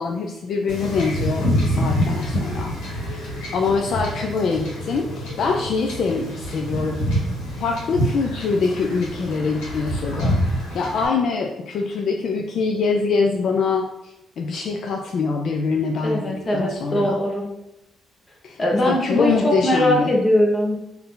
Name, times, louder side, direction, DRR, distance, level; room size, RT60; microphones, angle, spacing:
voice 1, 0.0-2.7 3.1-3.2 3.5-7.2 7.6-10.4 10.7-17.2 18.4-20.1, left 4 dB, 65° left, 2 dB, 0.4 m, -24 dB
Wind / Ocean / Boat Water vehicle, 0.7-11.0, equal, 90° left, 1.3 m, -26 dB
voice 2, 16.0-17.5 18.6-20.8, left 1 dB, 30° left, -1 dB, 1.1 m, -20 dB
4.0 x 2.7 x 3.8 m, 0.89 s
cardioid pair, 90°, 0 cm